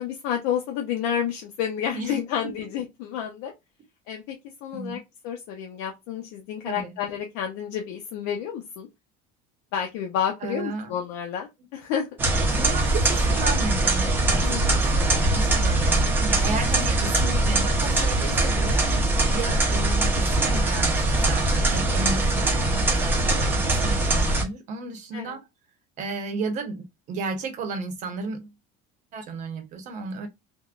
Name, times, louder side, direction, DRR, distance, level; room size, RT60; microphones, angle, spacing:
voice 1, 0.0-3.5 4.1-4.4 4.6-8.9 9.7-12.1 14.4-15.1 25.1-25.4, left 9 dB, 75° left, 0.6 m, -30 dB
voice 2, 1.9-2.5 4.7-5.0 6.6-6.9 10.4-10.9 12.5-25.5 26.0-28.5 29.1-30.3, right 3 dB, 40° right, 0.8 m, -34 dB
sound 1, 12.2-24.4, right 2 dB, 10° right, 0.6 m, -22 dB
3.5 x 2.2 x 2.3 m
cardioid pair, 175°, 19 cm